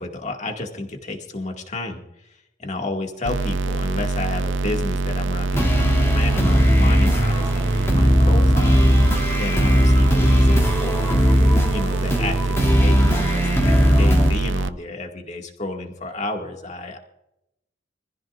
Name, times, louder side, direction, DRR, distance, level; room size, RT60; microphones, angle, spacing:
voice 1, 0.0-8.9 9.3-11.2 11.7-17.0, left 2 dB, 40° left, 2 dB, 2.2 m, -31 dB
sound 1, 3.3-14.7, right 3 dB, 75° right, 0.6 m, -24 dB
sound 2, 5.5-14.3, equal, 15° left, 2.6 m, -18 dB
25.0 x 15.0 x 2.6 m, 0.86 s
head